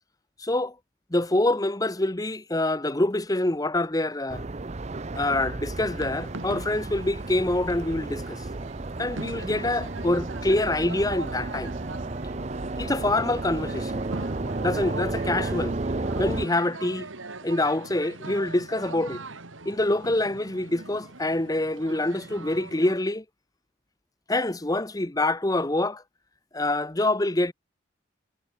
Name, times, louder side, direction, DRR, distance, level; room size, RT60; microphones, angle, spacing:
voice 1, 0.4-0.7 1.1-4.4 5.1-8.4 9.0-11.7 12.8-14.0 14.6-15.8 16.2-17.1 17.4-19.2 19.6-23.2 24.3-26.0 26.5-27.5, left 2 dB, 20° left, 1.0 m, -26 dB
sound 1, 4.3-16.5, right 2 dB, 35° right, 0.7 m, -33 dB
sound 2, 5.9-22.9, right 3 dB, 90° right, 2.9 m, -41 dB
head